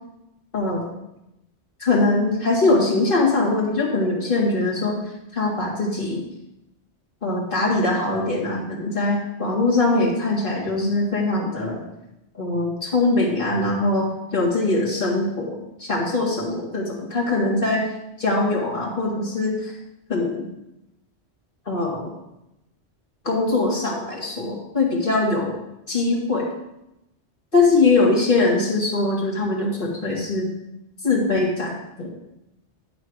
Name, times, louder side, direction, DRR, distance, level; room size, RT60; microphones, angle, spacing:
voice 1, 0.5-0.9 1.8-5.0 5.3-6.2 7.2-11.8 12.4-15.5 15.8-17.9 18.2-19.7 20.1-20.5 21.7-22.1 23.2-25.5 25.9-26.5 27.5-30.5 31.0-32.1, left 2 dB, 50° left, -4 dB, 2.3 m, -22 dB
11.0 x 5.0 x 4.8 m, 0.87 s
omnidirectional pair, 1.1 m